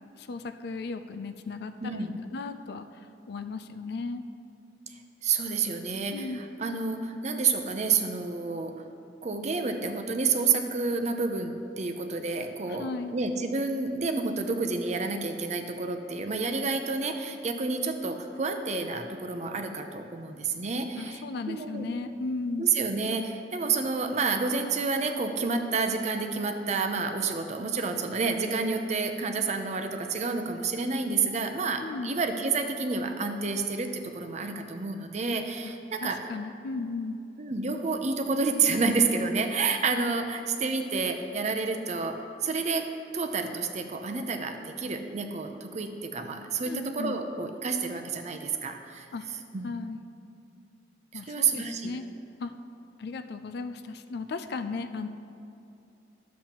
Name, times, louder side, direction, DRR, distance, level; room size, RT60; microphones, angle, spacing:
voice 1, 0.2-4.2 6.1-6.4 12.7-13.1 21.0-22.7 31.8-32.1 35.6-35.7 36.0-37.2 46.7-47.2 49.1-49.3 49.6-50.0 51.1-52.1 52.4-52.5 53.0-55.1, left 3 dB, 60° left, 9 dB, 0.4 m, -36 dB
voice 2, 1.8-2.2 4.9-6.3 6.6-8.7 9.2-21.9 22.6-36.2 37.4-42.9 43.1-49.1 49.5-49.7 51.1-51.9, right 4 dB, 40° right, 5 dB, 0.6 m, -29 dB
12.0 x 7.3 x 3.0 m, 2.8 s
head